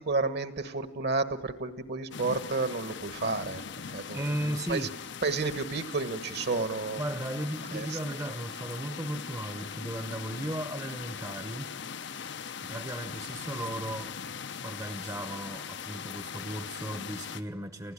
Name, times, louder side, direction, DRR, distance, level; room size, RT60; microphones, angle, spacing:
voice 1, 0.0-4.9 5.2-7.0 7.7-8.0, right 3 dB, 55° right, 1.4 m, -31 dB
sound 1, 2.1-17.4, left 6 dB, 60° left, 0.7 m, -40 dB
voice 2, 4.1-5.0 7.0-11.7 12.7-14.2 14.6-17.9, right 1 dB, 15° right, 0.9 m, -36 dB
30.0 x 16.0 x 9.9 m
head